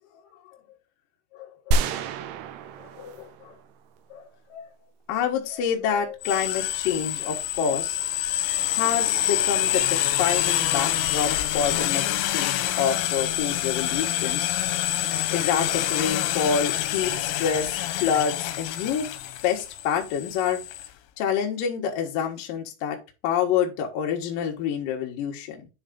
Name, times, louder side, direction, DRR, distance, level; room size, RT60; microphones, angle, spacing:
voice 1, 1.3-2.1 2.8-3.6 4.1-4.7 5.1-8.0 8.7-12.0 12.3-14.5 15.3-19.1 19.4-20.6 21.2-23.0 23.2-25.7, left 8 dB, 70° left, 1 dB, 2.2 m, -27 dB
sound 1, 1.7-4.0, right 1 dB, 85° right, 3.5 m, -29 dB
sound 2, 6.2-20.9, left 13 dB, 85° left, 3.3 m, -26 dB
9.8 x 4.0 x 3.8 m, 0.29 s
omnidirectional pair, 6.0 m